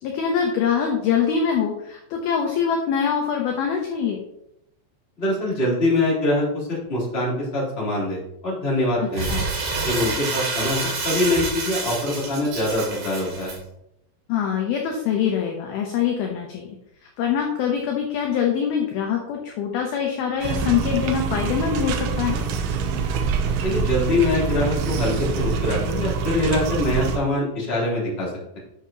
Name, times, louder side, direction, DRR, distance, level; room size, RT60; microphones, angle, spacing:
voice 1, 0.0-4.2 9.0-9.5 14.3-16.8 17.2-22.4, left 7 dB, 75° left, 1 dB, 2.3 m, -24 dB
voice 2, 5.2-9.3 9.8-13.5 23.6-28.6, left 1 dB, 15° left, -6 dB, 2.5 m, -24 dB
Crumpling crinkling, 9.1-13.6, right 3 dB, 65° right, 4.2 m, -28 dB
sound 1, 20.4-27.2, right 5 dB, 85° right, 3.3 m, -25 dB
10.0 x 6.5 x 2.8 m, 0.80 s
omnidirectional pair, 5.3 m